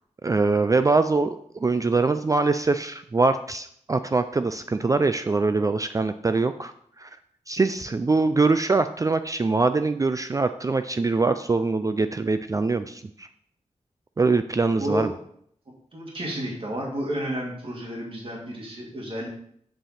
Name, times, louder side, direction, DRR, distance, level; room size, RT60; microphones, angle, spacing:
voice 1, 0.2-7.1 7.5-13.3 14.2-15.1, right 3 dB, 25° right, 10 dB, 0.3 m, -23 dB
voice 2, 15.9-19.3, equal, 45° right, -2 dB, 2.4 m, -31 dB
7.5 x 5.4 x 4.3 m, 0.66 s
wide cardioid pair, 90°, 12 cm